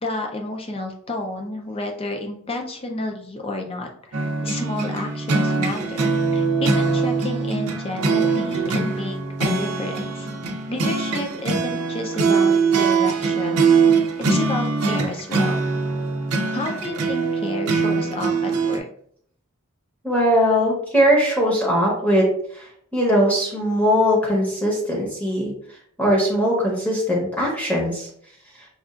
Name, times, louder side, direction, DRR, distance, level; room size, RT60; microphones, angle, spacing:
voice 1, 0.0-10.3 10.7-13.7 14.3-15.7 16.5-18.8, left 2 dB, 25° left, 3 dB, 0.5 m, -31 dB
sound 1, 4.1-18.8, right 4 dB, 85° right, 0.5 m, -22 dB
voice 2, 20.0-22.3 22.5-25.5 26.0-28.1, equal, 5° left, -4 dB, 0.8 m, -20 dB
5.4 x 2.4 x 2.4 m, 0.64 s
head